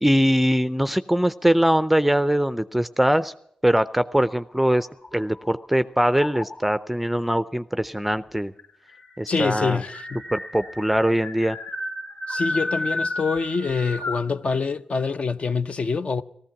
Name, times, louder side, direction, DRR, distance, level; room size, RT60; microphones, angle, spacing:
voice 1, 0.0-3.3 3.6-4.9 5.1-8.5 9.2-9.8 10.3-11.6, equal, 5° right, 0.5 m, -22 dB
sound 1, 4.3-5.7 6.2-6.8 7.8-7.9 8.2-8.3 8.6-14.3, left 1 dB, 70° left, 2.5 m, -32 dB
voice 2, 9.3-10.2 12.3-16.2, left 4 dB, 55° left, 0.7 m, -25 dB
16.0 x 14.0 x 5.8 m
cardioid pair, 55°, 3 cm